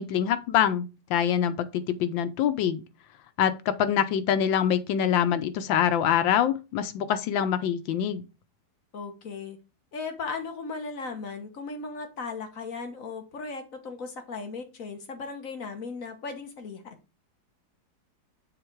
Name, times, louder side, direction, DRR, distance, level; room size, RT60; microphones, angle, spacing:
voice 1, 0.0-2.8 3.4-8.2, left 9 dB, 90° left, 1.5 m, -25 dB
voice 2, 8.9-9.6 9.9-17.0, left 4 dB, 50° left, 1.4 m, -37 dB
6.8 x 3.9 x 4.6 m
omnidirectional pair, 2.0 m